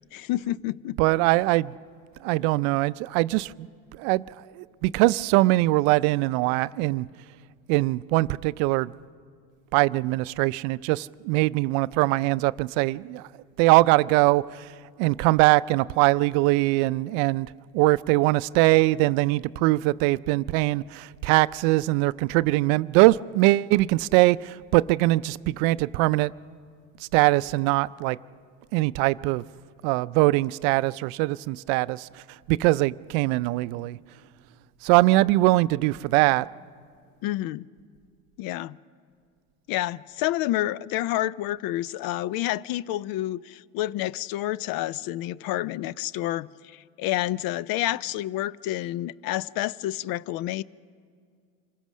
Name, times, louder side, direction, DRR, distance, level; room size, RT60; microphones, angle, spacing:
voice 1, 0.1-1.0 37.2-37.7 38.4-38.8 39.7-50.6, left 15 dB, 55° left, 0.5 m, -29 dB
voice 2, 1.0-1.7 2.2-3.7 4.0-7.1 7.7-8.9 9.7-13.3 13.6-14.7 15.0-26.3 27.1-28.2 28.7-29.4 29.8-32.1 32.5-34.0 34.8-36.5, right 20 dB, 70° right, 0.5 m, -22 dB
26.5 x 15.5 x 6.2 m
supercardioid pair, 95°, 44 cm